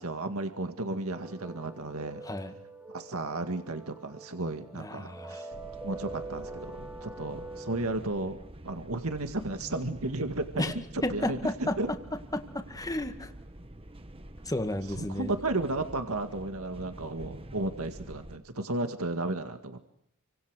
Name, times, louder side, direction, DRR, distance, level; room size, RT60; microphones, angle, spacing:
voice 1, 0.0-2.2 2.9-5.5 5.8-8.4 8.6-11.9 14.9-19.9, right 2 dB, 70° right, 7 dB, 2.1 m, -34 dB
sound 1, 1.1-8.0, right 3 dB, 10° right, 3.5 m, -44 dB
voice 2, 4.7-5.4 10.6-10.7 11.0-11.8 12.3-13.3 14.5-15.3, left 1 dB, 15° left, 7 dB, 2.2 m, -32 dB
sound 2, 5.5-18.4, right 1 dB, 25° right, 1.6 m, -47 dB
29.0 x 25.5 x 6.5 m, 0.72 s
head